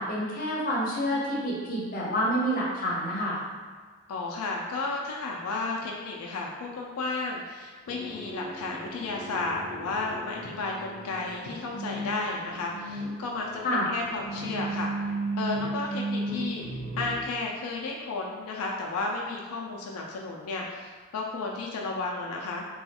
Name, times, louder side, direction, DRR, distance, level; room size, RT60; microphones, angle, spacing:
voice 1, 0.0-3.4 13.6-13.9, equal, 40° left, -6 dB, 0.7 m, -28 dB
voice 2, 4.1-14.9 15.4-22.6, left 3 dB, 85° left, -1 dB, 0.4 m, -33 dB
sound 1, 7.9-17.3, right 2 dB, 5° left, 1.1 m, -35 dB
3.0 x 2.3 x 2.8 m, 1.5 s
head